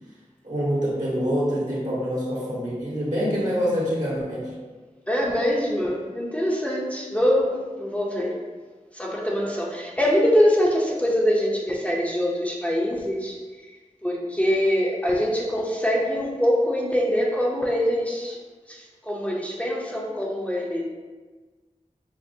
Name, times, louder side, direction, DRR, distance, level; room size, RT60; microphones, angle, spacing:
voice 1, 0.4-4.5, equal, 65° right, -7 dB, 1.4 m, -25 dB
voice 2, 5.1-8.4 8.9-13.7 14.0-18.4 18.7-20.8, equal, 10° left, -4 dB, 0.6 m, -24 dB
5.8 x 2.1 x 2.6 m, 1.3 s
wide cardioid pair, 55°, 14 cm